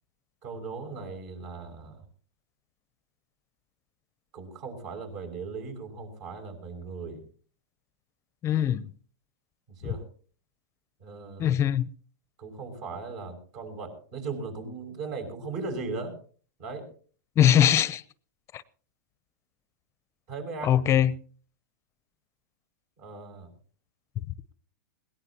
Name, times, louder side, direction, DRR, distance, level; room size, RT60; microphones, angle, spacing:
voice 1, 0.4-2.0 4.3-7.2 9.8-10.0 11.0-11.6 12.4-16.1 16.6-16.9 20.3-20.7 23.0-23.5, right 4 dB, 55° right, 6.5 m, -38 dB
voice 2, 8.4-8.8 9.8-9.9 11.4-11.9 17.4-18.0 18.5-18.6 20.6-21.2, left 10 dB, 30° left, 0.6 m, -21 dB
21.0 x 18.0 x 2.9 m
hypercardioid pair, 120°, 10 cm